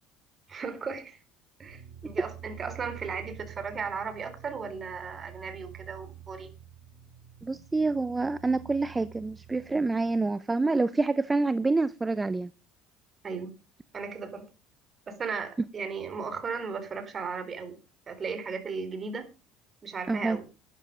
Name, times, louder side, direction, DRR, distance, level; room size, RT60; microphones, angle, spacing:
voice 1, 0.5-1.2 1.6-6.5 13.2-13.5 13.9-14.4 15.1-17.8 18.1-19.3 19.8-20.5, right 5 dB, 35° right, 4.1 m, -36 dB
sound 1, 1.7-10.2, right 10 dB, 80° right, 6.5 m, -48 dB
voice 2, 7.4-12.5 20.1-20.4, right 3 dB, 20° right, 0.7 m, -27 dB
12.5 x 10.0 x 5.1 m
hypercardioid pair, 75°, 0 cm